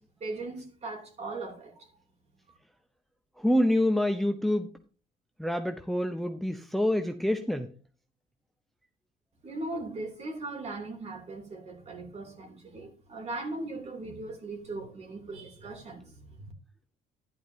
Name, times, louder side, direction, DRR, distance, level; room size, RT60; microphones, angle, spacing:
voice 1, 0.2-1.9 2.5-2.6 9.4-16.5, right 2 dB, 40° right, 3.1 m, -39 dB
voice 2, 3.4-4.7 5.4-7.7, left 1 dB, ahead, 0.8 m, -26 dB
11.5 x 11.0 x 2.8 m
cardioid pair, 110°, 17 cm